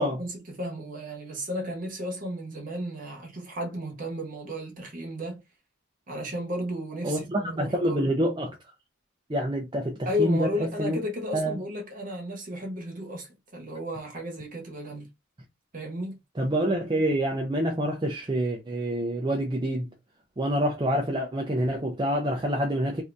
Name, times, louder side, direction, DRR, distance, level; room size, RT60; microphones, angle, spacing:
voice 1, 0.0-5.4 6.1-8.1 10.0-15.1 15.7-16.2, left 1 dB, 40° right, 1.0 m, -33 dB
voice 2, 7.0-8.6 9.3-10.5 10.8-11.0 11.3-11.6 16.4-19.9 20.4-23.0, right 1 dB, 20° right, 0.5 m, -27 dB
2.7 x 2.6 x 3.3 m
head